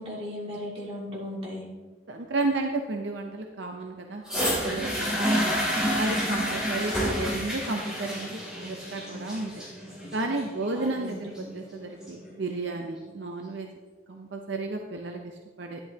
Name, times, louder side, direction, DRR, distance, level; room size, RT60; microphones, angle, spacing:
voice 1, 0.0-1.7 5.1-5.7 10.7-11.3, left 1 dB, 30° right, -4 dB, 2.4 m, -37 dB
voice 2, 2.1-5.5 6.0-9.5 10.1-13.7 14.1-15.8, right 2 dB, 65° right, 3 dB, 0.7 m, -33 dB
sound 1, 4.3-12.3 13.1-13.2, equal, 5° right, 2.8 m, -29 dB
11.5 x 10.0 x 2.8 m, 1.4 s
head